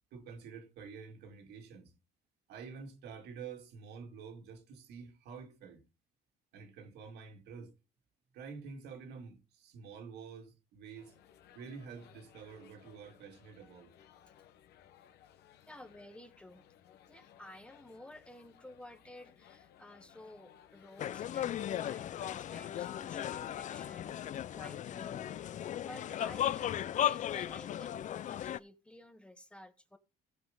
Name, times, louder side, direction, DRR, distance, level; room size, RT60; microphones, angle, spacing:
voice 1, 0.1-1.9 2.5-5.8 6.5-7.7 8.3-11.1 11.5-13.9, right 5 dB, 80° right, 2.3 m, -48 dB
sound 1, 11.0-22.5, left 10 dB, 75° left, 1.1 m, -61 dB
voice 2, 15.7-16.6 17.1-25.5 25.8-30.0, left 1 dB, 5° left, 1.2 m, -53 dB
sound 2, 21.0-28.6, left 11 dB, 45° left, 0.5 m, -36 dB
16.0 x 5.7 x 3.8 m
cardioid pair, 110°, 17 cm